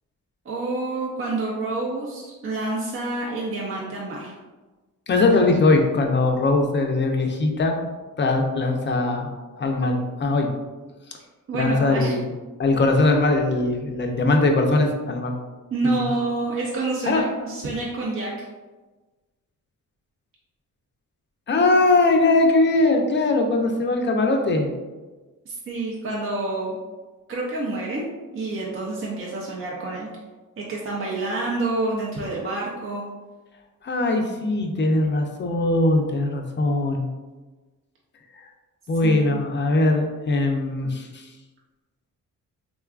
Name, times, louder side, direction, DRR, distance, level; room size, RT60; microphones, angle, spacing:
voice 1, 0.5-4.3 11.5-12.1 15.7-18.5 25.5-26.8 27.3-28.1 28.3-30.1 30.6-33.0 39.0-39.3, right 2 dB, 40° right, -4 dB, 0.6 m, -28 dB
voice 2, 5.1-7.8 8.2-9.3 9.6-10.6 11.5-12.3 12.6-15.3 15.8-16.1 17.1-17.3 21.5-24.7 33.8-37.1 38.9-41.2, left 2 dB, 35° left, 3 dB, 0.5 m, -21 dB
3.6 x 2.3 x 2.3 m, 1.2 s
cardioid pair, 90°, 33 cm